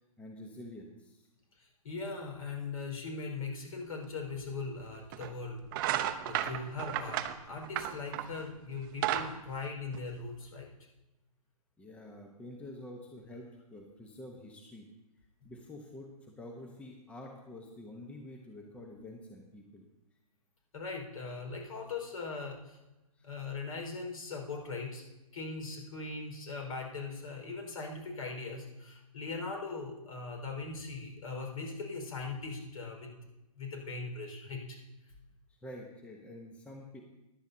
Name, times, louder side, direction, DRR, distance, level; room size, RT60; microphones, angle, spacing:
voice 1, 0.2-1.3 11.8-14.9 15.4-19.9 23.2-23.3 35.6-37.0, left 1 dB, 5° left, 1 dB, 1.0 m, -48 dB
voice 2, 1.6-5.7 6.0-10.7 20.7-22.8 23.2-25.0 25.3-33.1 33.6-34.8, left 4 dB, 65° left, 1 dB, 4.8 m, -40 dB
sound 1, 4.4-4.5 5.1-5.3 5.7-8.4 8.8-10.4, right 12 dB, 35° right, 0.7 m, -33 dB
15.0 x 11.0 x 2.8 m, 0.99 s
hypercardioid pair, 135°, 19 cm